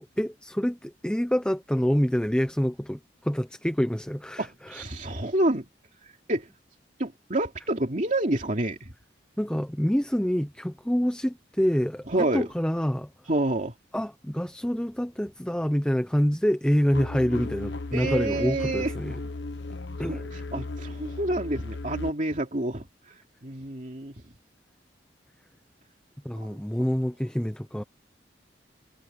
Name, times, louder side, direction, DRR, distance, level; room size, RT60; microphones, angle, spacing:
voice 1, 0.0-4.8 9.4-13.1 13.9-19.2 20.0-20.2 26.2-27.8, equal, 5° left, 0.7 m, -26 dB
voice 2, 4.4-5.6 6.3-6.5 7.0-8.9 12.1-12.5 13.3-13.7 17.9-18.9 20.0-24.1, right 1 dB, 40° right, 2.8 m, -28 dB
sound 1, 16.9-22.1, left 3 dB, 75° left, 1.0 m, -35 dB
head